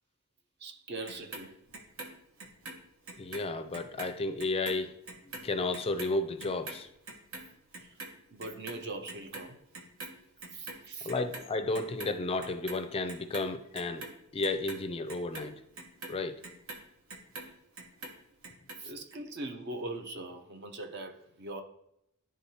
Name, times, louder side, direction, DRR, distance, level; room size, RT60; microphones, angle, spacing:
voice 1, 0.6-1.6 8.3-9.6 10.5-11.1 18.8-21.6, right 2 dB, 50° right, 0.7 m, -41 dB
Clock, 1.1-3.5 3.7-10.1 10.4-11.5 11.7-12.8 13.1-17.5 17.8-18.8 19.1-19.2, right 2 dB, 90° right, 1.1 m, -44 dB
voice 2, 3.2-4.9 5.4-6.9 11.0-14.1 14.3-15.6 16.1-16.4, left 2 dB, 25° left, 0.4 m, -32 dB
11.0 x 3.6 x 2.8 m
head